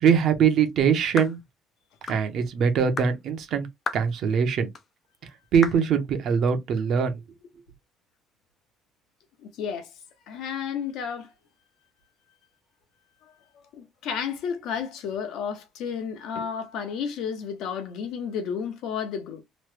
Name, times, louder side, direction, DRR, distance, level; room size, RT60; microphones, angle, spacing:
voice 1, 0.0-1.4 2.1-3.7 3.9-4.7 5.5-7.2, right 7 dB, 45° right, 0.7 m, -22 dB
sound 1, 1.2-1.4 2.1-2.3 3.0-3.2 3.9-4.1 4.7-4.9 5.6-5.9, left 5 dB, 30° left, 0.4 m, -33 dB
voice 2, 9.4-9.9 10.3-11.3 13.2-19.4, left 7 dB, 60° left, 0.7 m, -32 dB
3.0 x 2.2 x 3.2 m
cardioid pair, 180°, 0 cm